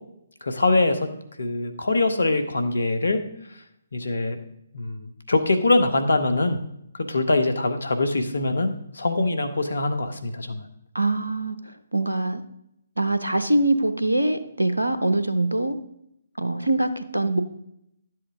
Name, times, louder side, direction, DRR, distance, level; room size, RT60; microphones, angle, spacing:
voice 1, 0.4-1.1 1.4-3.2 3.9-4.4 4.7-6.6 7.1-10.7, left 2 dB, 70° left, 8 dB, 1.2 m, -23 dB
voice 2, 10.9-12.4 13.0-15.8 16.4-17.4, right 2 dB, 85° right, 9 dB, 0.7 m, -23 dB
11.5 x 7.7 x 3.7 m, 0.79 s
figure-of-eight pair, 135°, 0 cm